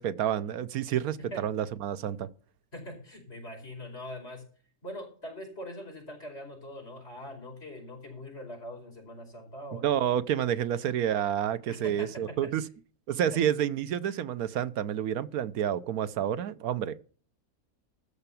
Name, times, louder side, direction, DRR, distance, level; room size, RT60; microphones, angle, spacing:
voice 1, 0.0-2.3 9.7-12.6 13.1-17.0, right 10 dB, 85° right, 1.2 m, -29 dB
voice 2, 2.7-4.4 4.8-10.0 10.4-10.6 11.7-12.5 13.3-13.4, left 1 dB, 45° left, 5.4 m, -42 dB
13.5 x 5.8 x 7.0 m
omnidirectional pair, 1.5 m